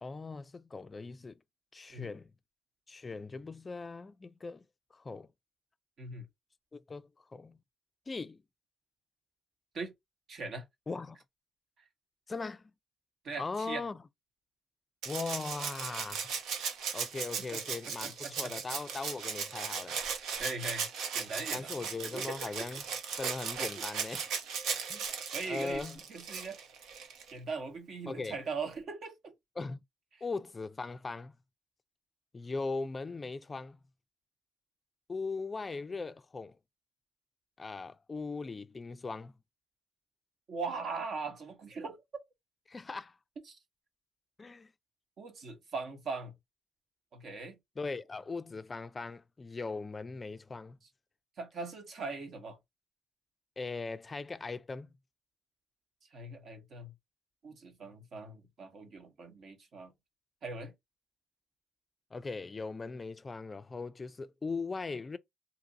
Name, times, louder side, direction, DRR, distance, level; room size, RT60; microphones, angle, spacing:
voice 1, 0.0-1.4 1.7-2.3 2.9-4.6 4.9-5.3 6.7-7.6 8.1-8.4 10.9-11.2 12.3-12.6 13.4-14.0 15.0-16.3 16.9-20.0 21.5-22.8 23.2-24.3 24.9-25.0 25.4-26.0 28.1-28.4 29.6-29.8 30.2-31.3 32.3-33.8 35.1-36.5 37.6-39.3 42.7-43.2 44.4-44.7 47.8-50.8 53.6-54.9 62.1-65.2, left 4 dB, 30° left, 0.3 m, -39 dB
voice 2, 10.3-10.6 13.2-13.8 18.0-18.5 20.4-20.9 21.1-21.7 22.1-22.6 25.3-26.6 27.3-29.3 40.5-42.0 43.5-43.6 45.2-46.3 47.1-47.6 51.4-52.6 56.1-56.9 57.4-59.9 60.4-60.7, right 4 dB, 60° right, 1.1 m, -40 dB
Rattle (instrument), 15.0-27.3 28.7-28.8, right 6 dB, 85° right, 0.7 m, -37 dB
2.8 x 2.5 x 3.8 m
cardioid pair, 90°, 0 cm